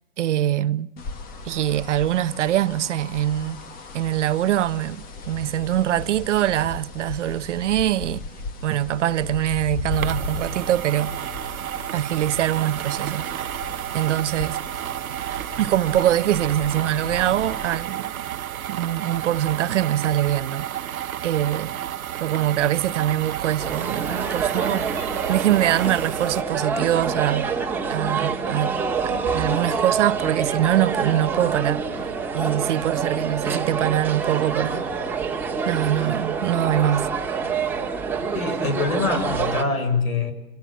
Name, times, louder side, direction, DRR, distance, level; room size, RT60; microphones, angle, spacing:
voice 1, 0.2-0.9 1.4-3.6 3.9-8.2 8.6-11.2 11.9-13.3 13.9-14.6 15.6-18.1 18.7-20.9 21.2-21.7 22.2-27.6 27.9-28.8 29.0-32.1 32.3-34.9 35.7-37.1, right 12 dB, 60° right, 1.0 m, -23 dB
sound 1, 1.0-17.8, left 4 dB, 20° left, 1.9 m, -37 dB
sound 2, 9.9-26.4, right 11 dB, 80° right, 1.1 m, -31 dB
sound 3, 23.6-39.6, right 5 dB, 5° right, 2.2 m, -26 dB
voice 2, 38.3-40.3, left 4 dB, 90° left, 7.0 m, -24 dB
28.5 x 27.0 x 7.4 m
hypercardioid pair, 150°, 41 cm